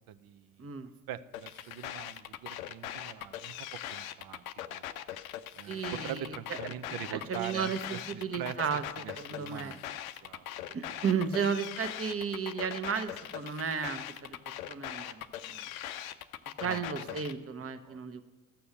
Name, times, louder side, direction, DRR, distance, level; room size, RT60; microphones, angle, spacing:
voice 1, 0.0-0.7 1.1-4.4 4.7-4.9 5.5-8.6 8.9-9.9 10.2-10.4 11.0-11.1 16.6-17.2 17.8-18.0, right 10 dB, 55° right, 14 dB, 0.7 m, -43 dB
sound 1, 1.3-17.3, left 12 dB, 90° left, 0.5 m, -41 dB
voice 2, 5.7-6.3 7.3-8.8 9.2-9.7 10.7-14.4 14.7-15.6 16.6-18.2, right 6 dB, 35° right, 10 dB, 1.1 m, -34 dB
13.0 x 6.9 x 6.5 m, 1.2 s
hypercardioid pair, 60°, 41 cm